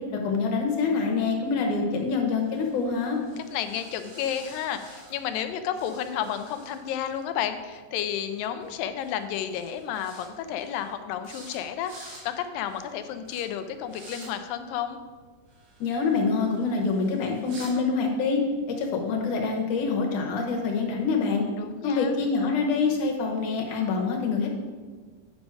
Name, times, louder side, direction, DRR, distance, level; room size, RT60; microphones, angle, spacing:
voice 1, 0.1-3.2 15.8-21.4 21.8-24.5, left 4 dB, 70° left, 1 dB, 2.3 m, -26 dB
sound 1, 2.4-5.5 5.8-7.2 8.6-8.7 9.0-9.2 9.5-10.3 10.6-10.9 11.2-11.6 11.8-12.2 12.6-12.9 13.3-13.4 13.9-14.3 15.5-17.7, right 2 dB, 85° right, 4.1 m, -49 dB
voice 2, 3.4-15.0 21.6-22.1, left 9 dB, 85° left, 9 dB, 2.3 m, -32 dB
9.4 x 5.1 x 4.8 m, 1.5 s
omnidirectional pair, 3.9 m